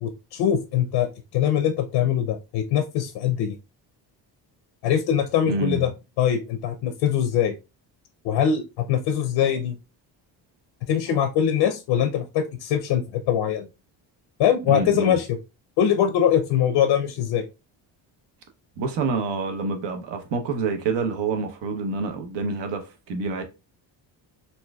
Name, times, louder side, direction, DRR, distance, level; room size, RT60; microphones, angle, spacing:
voice 1, 0.0-1.1 1.3-3.6 4.8-5.9 6.2-7.6 8.2-9.7 10.9-13.7 14.4-15.3 15.8-17.4, left 9 dB, 80° left, 0.6 m, -22 dB
voice 2, 5.5-5.8 14.7-15.2 18.8-23.4, right 4 dB, 70° right, 0.9 m, -27 dB
4.3 x 2.6 x 2.3 m
cardioid pair, 100°, 44 cm